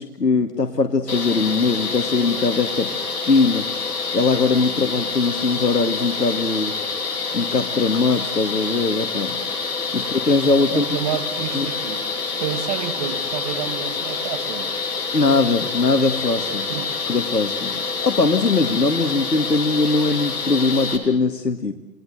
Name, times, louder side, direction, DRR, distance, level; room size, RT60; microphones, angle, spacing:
voice 1, 0.0-3.0 3.2-3.7 4.1-6.7 7.3-9.4 9.9-10.8 11.5-11.6 15.1-16.7 17.1-21.7, left 3 dB, 85° left, 7 dB, 2.0 m, -21 dB
sound 1, 1.1-21.0, left 4 dB, 65° left, 7.7 m, -27 dB
voice 2, 10.7-12.0 12.4-14.7 16.5-16.9, right 11 dB, 25° right, 10 dB, 2.0 m, -30 dB
29.0 x 19.5 x 7.9 m, 0.92 s
figure-of-eight pair, 140°, 47 cm